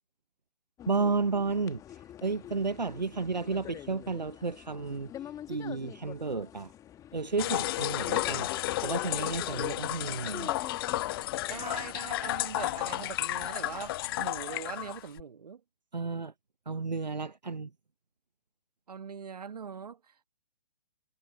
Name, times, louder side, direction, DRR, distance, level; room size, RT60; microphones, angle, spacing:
sound 1, 0.8-12.0, left 11 dB, 15° left, 1.6 m, -46 dB
voice 1, 0.9-6.7 7.1-8.5 8.8-10.5 15.9-16.3 16.7-17.7, right 4 dB, 85° right, 0.9 m, -32 dB
sound 2, 7.4-15.2, left 16 dB, 35° left, 0.8 m, -32 dB
voice 2, 11.5-15.6 18.9-20.3, right 6 dB, 65° right, 1.6 m, -41 dB
figure-of-eight pair, 125°, 21 cm